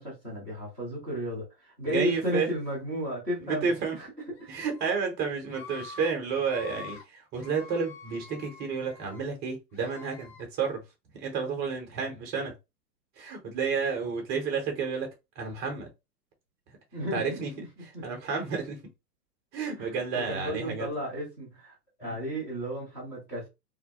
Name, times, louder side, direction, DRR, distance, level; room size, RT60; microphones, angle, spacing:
voice 1, 0.0-4.1 16.9-17.7 17.9-18.0 19.8-23.5, equal, 5° left, 0.4 m, -34 dB
voice 2, 1.8-2.5 3.4-4.0 4.5-10.8 11.1-12.5 13.2-15.9 17.1-17.5 18.0-18.8 19.5-20.9 22.0-22.2, right 5 dB, 20° right, 0.7 m, -31 dB
Screaming, 4.3-4.9 5.5-6.1 6.4-7.0 7.4-9.2 9.7-10.4, left 6 dB, 35° left, 1.0 m, -47 dB
2.3 x 2.0 x 2.8 m
hypercardioid pair, 130°, 50 cm